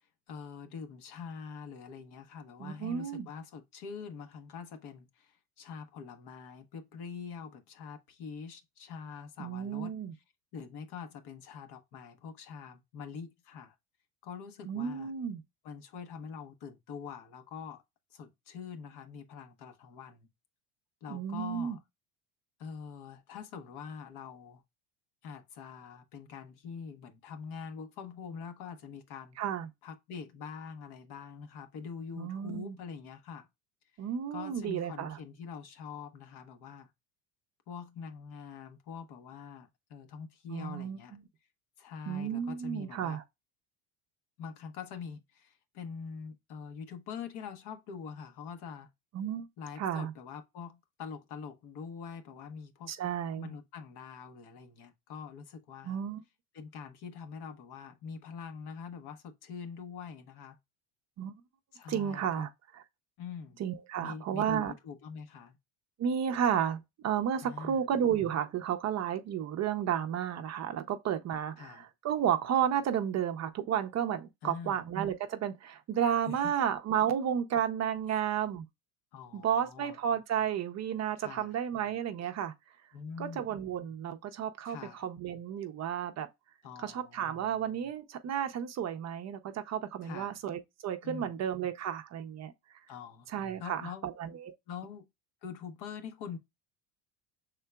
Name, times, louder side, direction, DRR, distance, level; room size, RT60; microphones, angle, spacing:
voice 1, 0.3-9.9 10.5-13.7 14.2-15.1 15.6-17.8 18.1-20.3 21.0-21.8 22.6-24.6 25.2-29.4 29.8-33.5 34.3-36.9 37.7-41.2 41.8-43.2 44.4-48.9 49.6-52.9 53.4-56.0 56.5-60.6 61.7-62.5 63.2-63.6 64.0-65.6 67.4-67.9 71.6-71.9 74.4-74.8 76.2-76.5 78.1-78.2 79.1-80.0 81.2-81.5 82.9-83.5 84.7-85.0 86.6-87.5 90.0-90.4 91.0-91.4 92.9-93.3 93.6-94.1 94.7-95.1 95.4-96.4, left 6 dB, 60° left, 1.0 m, -44 dB
voice 2, 2.6-3.3 9.4-10.1 14.7-15.4 21.1-21.8 29.4-29.7 32.2-32.8 34.0-35.2 40.5-41.0 42.1-43.2 49.1-49.5 49.8-50.1 52.9-53.5 55.8-56.2 61.2-61.3 61.9-62.8 63.6-64.7 66.0-78.6 79.3-82.5 83.2-86.3 86.8-92.5 93.3-94.5, right 9 dB, 35° right, 0.5 m, -32 dB
5.5 x 3.7 x 2.2 m
supercardioid pair, 110°, 45 cm